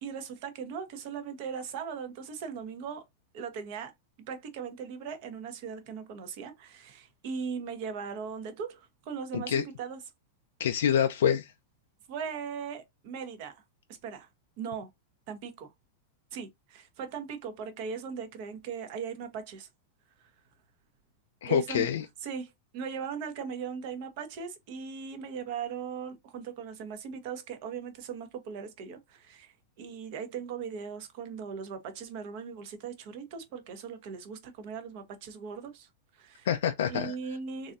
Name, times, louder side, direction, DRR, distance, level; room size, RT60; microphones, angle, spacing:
voice 1, 0.0-3.0 3.3-3.9 4.3-10.0 12.1-13.6 14.0-14.3 14.6-14.9 15.3-15.7 16.3-19.7 21.4-21.9 22.2-35.9 36.1-36.5 36.9-37.7, right 6 dB, 45° right, 1.0 m, -39 dB
voice 2, 9.3-9.6 10.6-11.5 21.4-22.0 36.4-37.1, left 9 dB, 85° left, 0.4 m, -26 dB
3.9 x 2.6 x 2.5 m
supercardioid pair, 165°, 0 cm